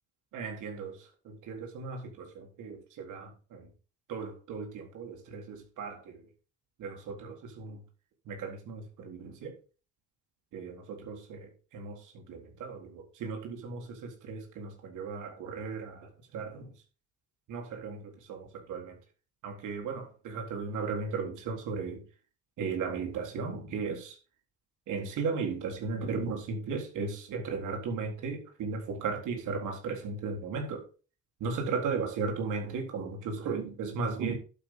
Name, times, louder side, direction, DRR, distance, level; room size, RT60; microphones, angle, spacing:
voice 1, 0.3-3.7 4.1-6.2 6.8-7.8 8.3-9.5 10.5-16.7 17.5-19.0 19.4-22.0 22.6-24.2 24.9-30.8 31.4-34.3, right 4 dB, 85° right, 3.9 m, -36 dB
11.5 x 8.5 x 3.9 m
cardioid pair, 90°, 30 cm